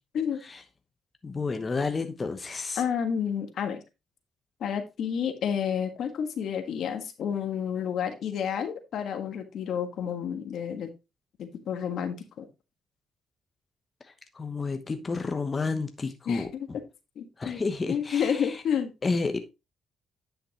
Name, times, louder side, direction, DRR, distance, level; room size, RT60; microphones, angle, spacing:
voice 1, 1.2-2.8 14.0-16.8 17.4-18.6 19.0-19.5, left 4 dB, 30° left, 1.0 m, -31 dB
voice 2, 2.8-3.8 4.6-10.9 11.4-12.4 16.3-16.7 17.1-17.6 17.9-18.9, left 8 dB, 70° left, 1.5 m, -30 dB
9.9 x 5.8 x 3.0 m
cardioid pair, 90°, 0 cm